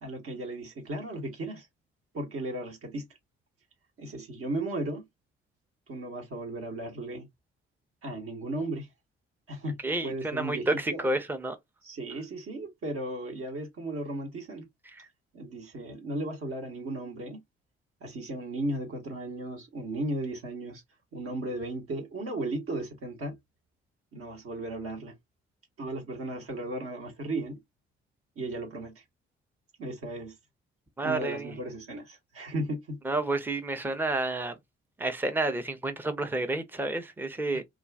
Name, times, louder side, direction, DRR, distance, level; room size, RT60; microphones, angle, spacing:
voice 1, 0.0-1.7 2.1-3.0 4.0-5.1 5.9-7.3 8.0-8.9 9.5-9.8 10.0-11.0 11.8-14.7 15.3-17.4 18.0-20.8 21.1-23.3 24.1-25.1 25.8-27.6 28.4-29.0 29.8-30.4 31.0-33.0, right 1 dB, 45° right, 1.0 m, -35 dB
voice 2, 9.8-11.6 31.0-31.5 33.0-34.5 35.0-37.6, right 2 dB, 5° right, 0.6 m, -30 dB
2.4 x 2.4 x 3.2 m
figure-of-eight pair, 40°, 32 cm